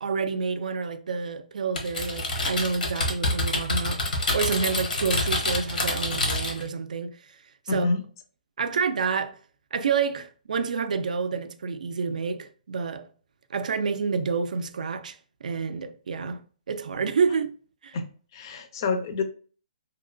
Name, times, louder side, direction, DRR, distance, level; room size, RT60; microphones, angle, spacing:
voice 1, 0.0-7.2 7.7-7.9 8.6-9.4 9.7-13.1 13.5-15.2 15.4-17.5 17.8-18.0, right 5 dB, 65° right, 0.4 m, -28 dB
Typing, 1.8-6.7, left 2 dB, 90° left, 1.1 m, -27 dB
voice 2, 7.7-8.0 17.9-18.1 18.3-19.2, left 3 dB, 30° left, 0.4 m, -27 dB
2.9 x 2.9 x 2.4 m
hypercardioid pair, 170°, 4 cm